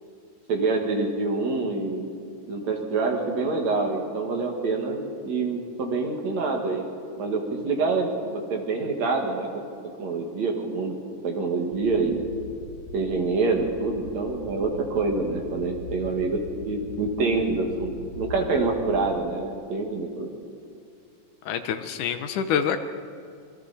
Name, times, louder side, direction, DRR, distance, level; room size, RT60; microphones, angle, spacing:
voice 1, 0.5-2.1 2.5-6.8 7.2-9.6 10.0-11.0 11.2-12.2 12.9-20.3, right 3 dB, 60° right, 1 dB, 3.1 m, -26 dB
sound 1, 11.7-19.2, left 3 dB, 50° left, 1.9 m, -41 dB
voice 2, 21.5-22.8, left 7 dB, 75° left, 9 dB, 2.3 m, -26 dB
26.5 x 23.5 x 4.2 m, 2.3 s
omnidirectional pair, 3.8 m